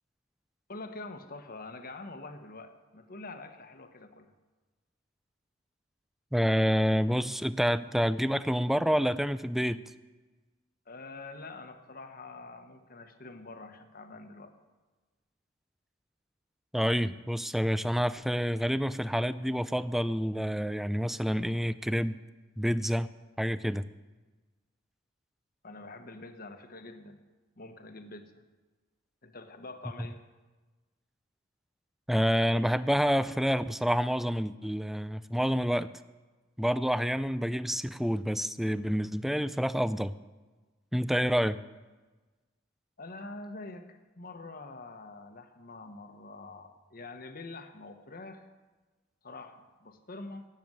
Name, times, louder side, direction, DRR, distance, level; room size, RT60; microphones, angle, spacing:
voice 1, 0.7-4.3 10.9-14.5 25.6-27.2 27.6-28.4 29.2-30.2 43.0-48.5 49.2-50.5, left 2 dB, 50° left, 7 dB, 1.2 m, -45 dB
voice 2, 6.3-9.8 16.7-22.2 22.6-23.1 23.4-23.8 32.1-35.9 36.6-40.1 40.9-41.6, equal, ahead, 14 dB, 0.4 m, -28 dB
18.0 x 6.9 x 7.8 m, 1.3 s
head